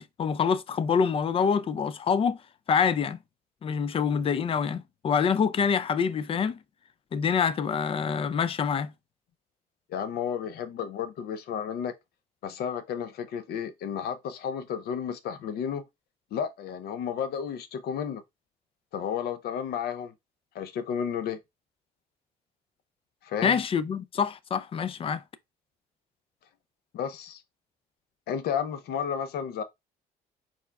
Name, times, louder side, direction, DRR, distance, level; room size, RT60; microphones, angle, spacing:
voice 1, 0.0-2.4 2.7-3.2 3.6-6.6 7.1-8.9 23.4-25.2, left 6 dB, 35° left, 0.4 m, -26 dB
voice 2, 9.9-11.9 12.4-15.9 16.3-18.2 18.9-20.1 20.5-21.4 23.2-23.6 26.9-27.4 28.3-29.6, left 8 dB, 70° left, 0.7 m, -32 dB
4.5 x 4.2 x 2.3 m
cardioid pair, 110°, 17 cm